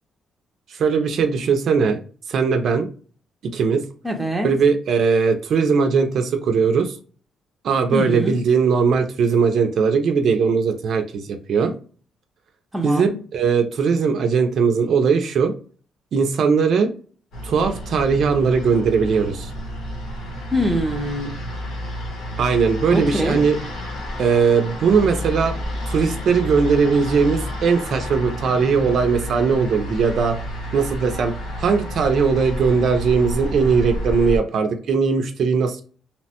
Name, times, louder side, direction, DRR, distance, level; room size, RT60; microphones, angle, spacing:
voice 1, 0.7-2.0 2.3-2.9 3.5-3.8 4.4-7.0 7.6-11.7 12.8-15.5 16.1-16.9 17.4-19.5 22.4-23.6 24.2-25.5 25.9-30.4 30.7-35.8, right 5 dB, 55° right, 6 dB, 0.4 m, -19 dB
voice 2, 4.0-4.5 7.9-8.4 12.7-13.1 20.5-21.3 22.9-23.4, equal, 5° right, 2 dB, 0.5 m, -23 dB
sound 1, 17.3-34.4, equal, 80° left, 0.9 m, -30 dB
2.9 x 2.1 x 2.8 m, 0.39 s
cardioid pair, 155°, 0 cm